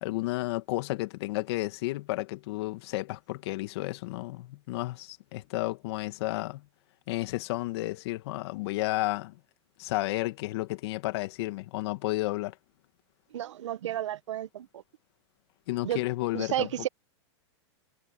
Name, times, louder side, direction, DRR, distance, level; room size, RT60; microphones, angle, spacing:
voice 1, 0.0-6.6 7.1-9.4 9.8-12.5 15.7-16.7, left 19 dB, 60° left, 2.2 m, -32 dB
voice 2, 13.3-14.8 15.8-16.0 16.3-16.9, right 12 dB, 80° right, 1.5 m, -32 dB
hypercardioid pair, 130°, 15 cm